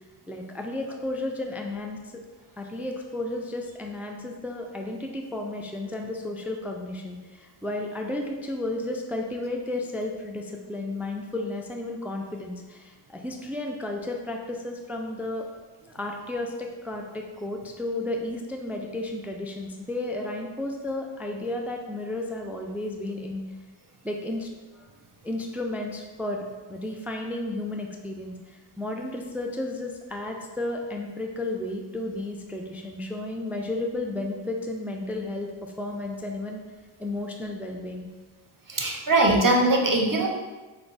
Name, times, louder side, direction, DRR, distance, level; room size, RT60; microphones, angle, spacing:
voice 1, 0.3-2.1 2.6-15.5 15.8-23.5 24.0-24.5 24.7-24.9 25.2-26.4 26.7-36.6 37.0-38.1, left 2 dB, 5° right, 2 dB, 0.4 m, -33 dB
voice 2, 38.7-40.3, right 2 dB, 40° right, 1 dB, 0.7 m, -21 dB
4.5 x 2.3 x 3.9 m, 1.3 s
cardioid pair, 45°, 49 cm